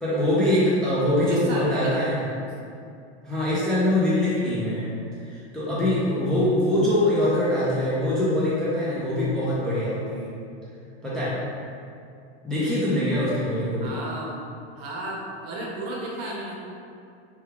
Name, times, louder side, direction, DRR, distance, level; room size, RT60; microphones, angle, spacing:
voice 1, 0.0-2.3 3.2-4.9 5.3-10.3 11.0-11.3 12.4-14.0, left 1 dB, ahead, -10 dB, 0.4 m, -23 dB
voice 2, 1.1-2.0 13.8-14.4 14.8-16.5, right 1 dB, 50° right, -3 dB, 0.8 m, -33 dB
3.2 x 2.2 x 3.3 m, 2.5 s
supercardioid pair, 125°, 34 cm